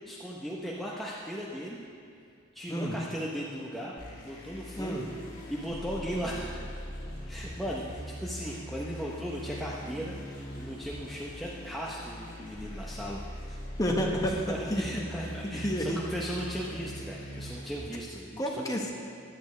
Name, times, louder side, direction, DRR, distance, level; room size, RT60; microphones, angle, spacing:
voice 1, 0.0-1.8 2.5-3.9 4.2-5.1 5.5-6.6 7.3-13.2 13.5-13.6 14.2-18.8, equal, ahead, -5 dB, 0.7 m, -37 dB
sound 1, 4.0-17.7, equal, 45° left, 2.4 m, -42 dB
voice 2, 13.8-14.4 14.7-14.8 15.4-16.0 18.4-18.9, equal, 20° left, 0 dB, 1.1 m, -29 dB
14.5 x 10.5 x 3.2 m, 2.4 s
head